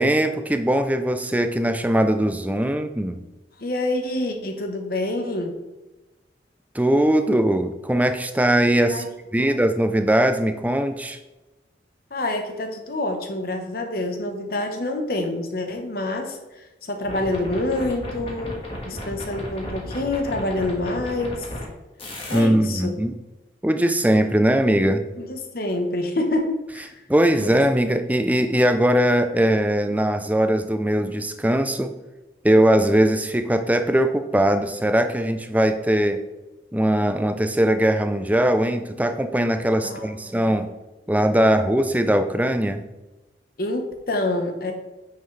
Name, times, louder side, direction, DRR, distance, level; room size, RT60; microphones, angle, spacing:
voice 1, 0.0-3.2 6.7-9.0 9.3-11.2 22.3-23.1 23.6-25.0 27.1-31.9 32.4-36.2 36.7-40.7 41.1-42.8, right 1 dB, 10° right, 8 dB, 0.5 m, -20 dB
voice 2, 3.6-5.5 8.9-9.1 9.4-9.6 12.1-21.5 22.3-22.9 25.1-26.9 27.4-27.7 39.8-40.6 43.6-44.7, left 2 dB, 55° left, 4 dB, 1.1 m, -27 dB
sound 1, 17.0-21.6 22.0-22.4, equal, 30° left, 1.8 m, -34 dB
9.3 x 6.0 x 3.3 m, 1.1 s
head